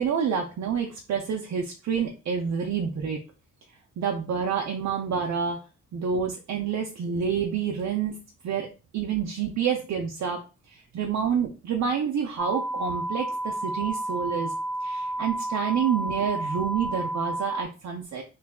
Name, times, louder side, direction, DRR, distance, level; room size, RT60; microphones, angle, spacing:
voice 1, 0.0-3.2 4.0-5.6 5.9-8.2 8.4-8.7 8.9-14.5 14.8-18.2, right 7 dB, 65° right, 2 dB, 0.5 m, -28 dB
sound 1, 12.4-17.6, right 1 dB, 5° left, 0.4 m, -31 dB
3.1 x 2.2 x 3.5 m, 0.32 s
wide cardioid pair, 150°, 30 cm